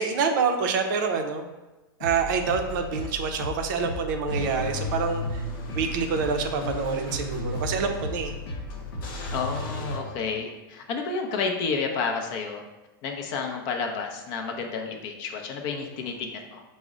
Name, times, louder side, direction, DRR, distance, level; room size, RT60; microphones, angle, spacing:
voice 1, 0.0-1.5 2.0-5.4 5.7-8.3, right 5 dB, 55° right, 5 dB, 0.5 m, -27 dB
sound 1, 2.0-10.4, left 2 dB, 85° left, 0.9 m, -37 dB
Car / Engine starting / Idling, 4.3-10.0, left 1 dB, 60° left, 1.0 m, -35 dB
voice 2, 9.3-12.6 13.0-16.6, left 5 dB, 40° left, 3 dB, 0.5 m, -30 dB
4.8 x 2.0 x 3.6 m, 1.1 s
supercardioid pair, 145°, 13 cm